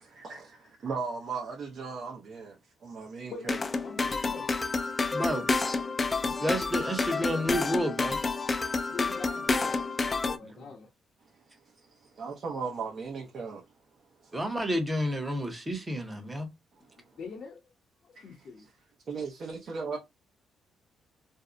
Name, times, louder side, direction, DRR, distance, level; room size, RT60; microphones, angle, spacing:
voice 1, 0.1-2.6 2.8-3.6 8.4-8.5 12.2-13.6 18.2-18.3 19.1-20.0, right 5 dB, 50° right, 0.6 m, -37 dB
voice 2, 3.3-4.5 8.9-10.9 17.0-17.6 18.0-18.7, left 5 dB, 60° left, 0.7 m, -44 dB
sound 1, 3.5-10.4, left 3 dB, 30° left, 0.3 m, -29 dB
voice 3, 5.1-5.5 6.4-8.2 14.3-16.5, equal, 15° right, 0.8 m, -30 dB
2.6 x 2.0 x 2.4 m
cardioid pair, 90°, 0 cm